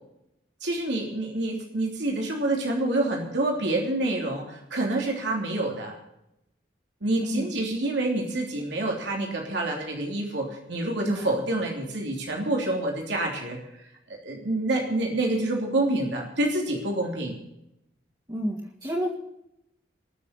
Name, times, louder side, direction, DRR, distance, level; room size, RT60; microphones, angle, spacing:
voice 1, 0.6-5.9 7.0-13.6 14.2-17.4, right 2 dB, 75° right, 0 dB, 3.2 m, -27 dB
voice 2, 18.3-19.1, equal, 20° right, -3 dB, 2.3 m, -30 dB
21.0 x 7.1 x 8.2 m, 0.83 s
head